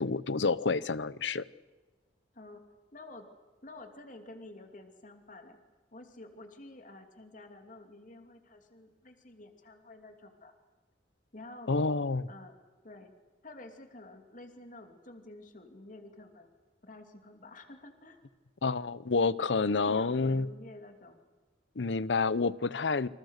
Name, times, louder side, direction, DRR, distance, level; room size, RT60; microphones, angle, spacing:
voice 1, 0.0-1.4 11.7-12.3 18.6-20.5 21.8-23.1, left 4 dB, 85° left, 19 dB, 0.8 m, -29 dB
voice 2, 2.9-3.3 3.6-5.6 5.9-10.5 11.3-11.8 12.3-12.6 12.8-13.1 13.4-16.5 16.8-18.3 19.7-21.3, left 2 dB, 45° left, 6 dB, 2.9 m, -50 dB
28.5 x 26.5 x 6.6 m, 1.3 s
head